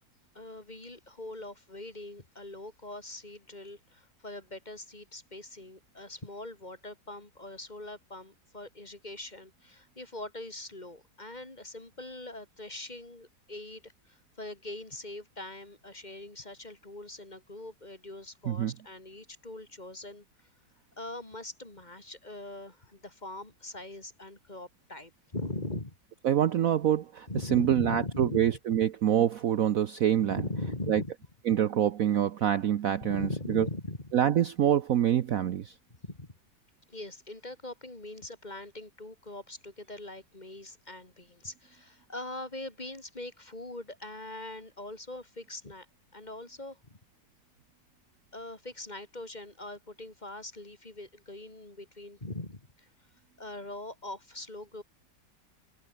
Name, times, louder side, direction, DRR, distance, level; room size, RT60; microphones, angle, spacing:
voice 1, 0.3-20.2 21.0-25.9 27.3-28.5 30.2-31.1 33.0-34.1 36.0-36.3 36.9-45.9 46.1-47.0 48.3-52.9 53.4-54.8, left 2 dB, 25° left, 3.1 m, -41 dB
voice 2, 26.2-30.4 30.9-31.0 31.5-33.7 34.1-35.7, right 10 dB, 60° right, 1.1 m, -26 dB
omnidirectional pair, 1.9 m